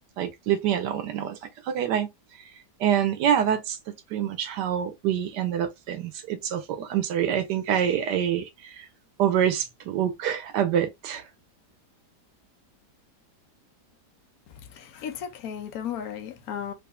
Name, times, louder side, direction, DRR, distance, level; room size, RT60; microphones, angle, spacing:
voice 1, 0.0-1.4 1.7-2.1 2.8-3.8 4.1-8.9 9.2-11.2, right 9 dB, 80° right, 1.3 m, -26 dB
voice 2, 14.5-16.7, left 8 dB, 65° left, 1.1 m, -35 dB
4.9 x 2.6 x 2.2 m
omnidirectional pair, 1.8 m